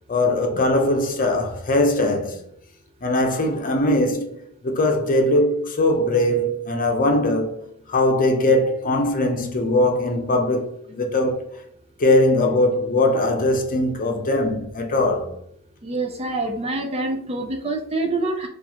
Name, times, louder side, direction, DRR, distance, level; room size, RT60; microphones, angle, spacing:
voice 1, 0.1-2.4 3.0-7.6 7.9-11.5 12.0-15.3, left 1 dB, 40° left, 0.6 m, -20 dB
voice 2, 15.8-18.5, right 2 dB, 25° right, 0.4 m, -26 dB
4.6 x 2.5 x 2.8 m
head